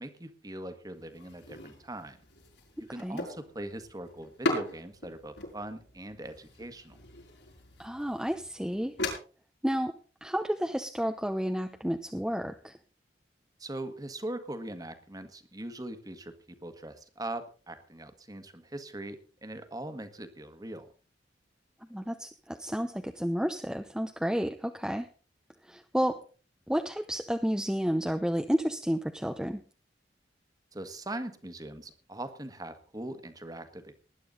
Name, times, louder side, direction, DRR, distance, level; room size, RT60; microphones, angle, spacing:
voice 1, 0.0-2.2 2.8-7.0 13.6-20.9 30.7-33.9, right 1 dB, 20° right, 9 dB, 1.6 m, -41 dB
sound 1, 0.9-9.1, left 1 dB, 85° left, 6.8 m, -39 dB
voice 2, 7.8-8.9 9.6-9.9 10.2-12.8 21.9-25.1 25.7-26.2 26.7-29.6, equal, 5° right, 5 dB, 0.7 m, -31 dB
19.5 x 11.0 x 4.0 m, 0.36 s
head